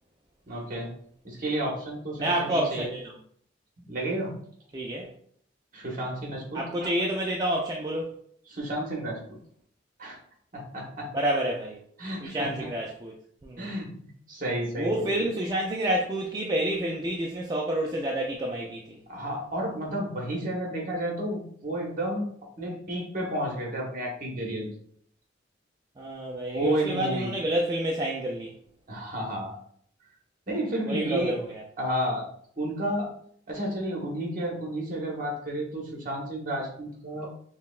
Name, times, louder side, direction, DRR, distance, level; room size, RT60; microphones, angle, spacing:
voice 1, 0.5-0.9 1.2-2.9 3.8-4.3 5.7-6.9 8.5-9.4 10.0-10.2 10.5-11.1 12.0-12.5 13.6-15.3 19.1-22.2 22.6-24.7 26.5-27.3 28.9-29.6 30.5-31.3 31.8-32.2 32.6-33.1 33.5-37.3, right 1 dB, 45° right, -1 dB, 1.1 m, -31 dB
voice 2, 2.2-3.1 4.7-5.1 6.5-8.2 11.1-11.8 12.2-13.1 13.4-13.7 14.8-19.0 26.0-28.5 30.9-31.6, right 1 dB, 20° right, -2 dB, 0.3 m, -29 dB
5.5 x 2.1 x 2.3 m, 0.62 s
head